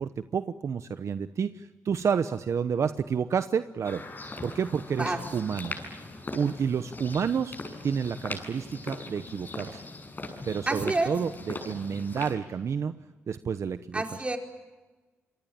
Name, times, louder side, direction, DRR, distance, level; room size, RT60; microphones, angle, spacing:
voice 1, 0.0-4.0 4.4-5.8 6.3-7.6 7.8-9.8 10.5-12.9 13.3-14.0, right 6 dB, 60° right, 11 dB, 1.0 m, -29 dB
sound 1, 3.8-12.3, left 2 dB, 35° left, 7.5 m, -40 dB
voice 2, 10.7-11.1 13.9-14.4, right 2 dB, 20° right, 3 dB, 4.8 m, -28 dB
27.5 x 23.0 x 8.8 m, 1.2 s
cardioid pair, 70°, 5 cm